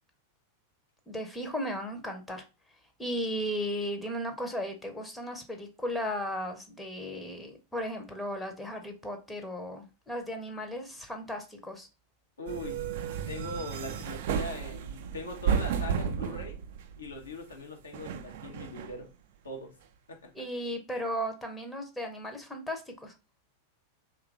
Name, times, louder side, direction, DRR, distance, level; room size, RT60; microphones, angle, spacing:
voice 1, 1.1-2.4 3.0-11.9 20.4-23.1, equal, 5° left, 4 dB, 0.6 m, -35 dB
voice 2, 12.4-12.9 13.3-16.6 17.0-19.1 19.4-19.7 20.1-20.3, left 1 dB, 70° left, 2 dB, 0.7 m, -41 dB
sound 1, 12.5-17.3 17.9-19.0, right 7 dB, 55° right, 0.3 m, -33 dB
2.9 x 2.4 x 3.6 m, 0.30 s
figure-of-eight pair, 90°, 0 cm